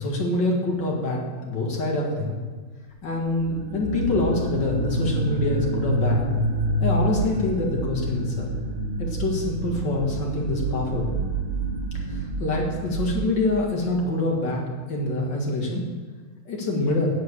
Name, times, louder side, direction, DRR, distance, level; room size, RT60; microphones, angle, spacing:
voice 1, 0.0-2.4 3.0-6.3 6.8-8.5 9.0-11.1 11.9-14.6 14.9-15.8 16.5-17.1, left 2 dB, 55° left, -1 dB, 2.5 m, -25 dB
sound 1, 3.2-13.8, right 2 dB, 30° right, 1.2 m, -28 dB
9.4 x 7.8 x 8.0 m, 1.4 s
omnidirectional pair, 2.3 m